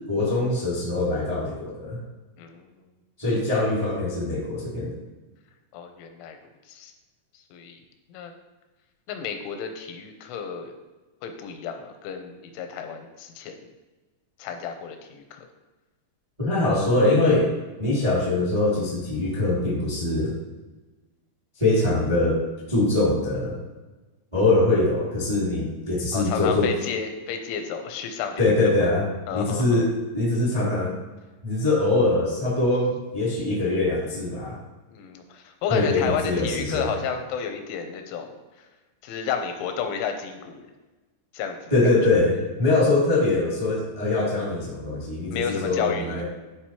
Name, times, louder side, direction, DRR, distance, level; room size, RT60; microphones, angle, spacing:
voice 1, 0.1-2.0 3.2-4.9 16.4-17.5 17.8-20.3 21.6-22.4 22.7-23.6 24.3-26.7 28.4-30.9 31.4-34.6 35.7-36.9 41.7-46.2, left 2 dB, 15° right, -7 dB, 1.0 m, -23 dB
voice 2, 2.4-2.7 5.7-6.4 6.7-6.9 7.5-7.8 8.1-8.3 9.1-10.7 11.2-13.6 14.4-15.5 26.1-28.8 29.3-29.9 34.9-38.3 38.6-38.7 39.0-40.6 41.3-41.8 45.3-46.2, left 7 dB, 85° left, 5 dB, 3.2 m, -31 dB
11.5 x 4.9 x 3.0 m, 1.2 s
omnidirectional pair, 5.4 m